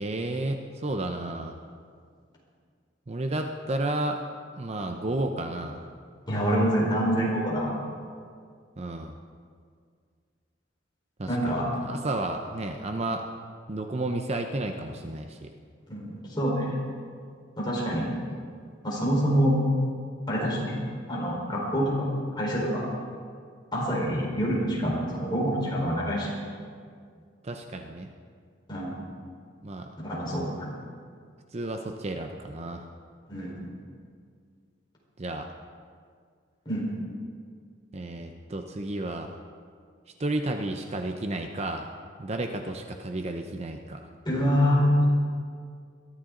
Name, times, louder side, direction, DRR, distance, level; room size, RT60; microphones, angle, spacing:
voice 1, 0.0-1.6 3.1-4.2 4.5-5.9 8.8-9.1 11.2-13.2 13.7-15.5 27.4-28.1 29.6-29.9 31.5-32.8 35.2-35.5 37.9-39.3 40.2-41.9 42.2-44.1, right 2 dB, 35° right, 5 dB, 0.7 m, -32 dB
voice 2, 6.3-7.7 11.3-11.7 15.9-16.8 17.6-18.1 18.8-19.5 20.3-20.7 21.1-22.1 22.3-22.8 23.7-26.3 28.7-29.0 30.0-30.7 33.3-33.6 36.7-36.8 44.2-45.1, equal, 25° left, -4 dB, 4.3 m, -26 dB
22.0 x 13.0 x 3.8 m, 2.1 s
head